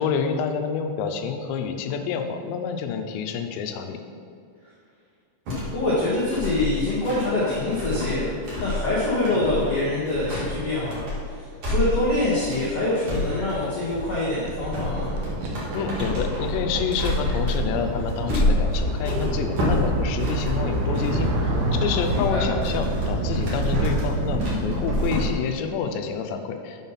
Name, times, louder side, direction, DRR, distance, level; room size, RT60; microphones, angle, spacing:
voice 1, 0.0-4.0 15.7-21.3 21.7-26.8, left 6 dB, 90° left, 6 dB, 2.8 m, -28 dB
sound 1, 5.5-21.3 21.7-25.3, left 1 dB, 45° right, 2.0 m, -29 dB
voice 2, 5.7-15.1 22.1-22.5, left 2 dB, 70° left, -8 dB, 1.4 m, -25 dB
sound 2, 13.8-25.3, right 1 dB, 75° right, 1.7 m, -27 dB
7.2 x 5.6 x 5.6 m, 2.4 s
omnidirectional pair, 4.9 m